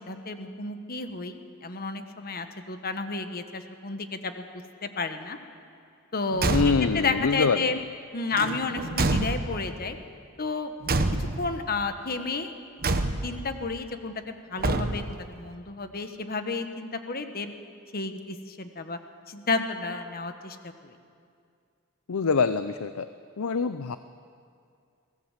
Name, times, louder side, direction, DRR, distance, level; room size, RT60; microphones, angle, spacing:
voice 1, 0.1-4.5 4.8-5.4 6.1-7.8 8.1-10.0 10.4-10.7 11.4-12.5 13.2-17.5 17.9-19.0 19.3-20.6 20.8-20.9, left 3 dB, 45° left, 8 dB, 1.4 m, -31 dB
Car / Truck / Slam, 6.3-7.1 8.3-9.8 10.8-11.6 12.8-13.5 14.6-15.3, right 2 dB, 45° right, 1.1 m, -27 dB
voice 2, 6.5-7.8 22.1-23.1 23.4-24.0, left 5 dB, 80° left, 12 dB, 0.6 m, -25 dB
23.5 x 17.5 x 7.4 m, 2.3 s
head